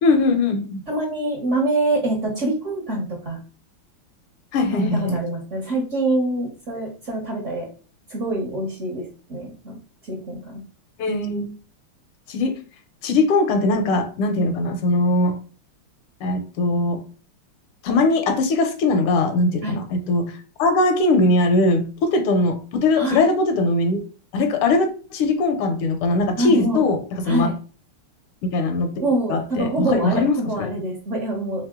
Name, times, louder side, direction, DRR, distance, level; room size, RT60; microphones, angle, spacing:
voice 1, 0.0-0.8 4.5-5.2 11.0-11.5 12.3-12.5 13.0-15.4 16.2-17.0 17.8-20.3 20.6-24.0 24.3-27.5 28.4-30.7, left 2 dB, 85° left, 7 dB, 1.7 m, -20 dB
voice 2, 0.9-3.4 4.7-7.7 8.1-9.8 10.1-10.6 19.6-19.8 23.0-23.2 26.4-26.8 27.3-27.5 29.0-31.7, right 2 dB, 45° right, -1 dB, 1.1 m, -25 dB
3.7 x 3.6 x 3.6 m, 0.37 s
omnidirectional pair, 2.4 m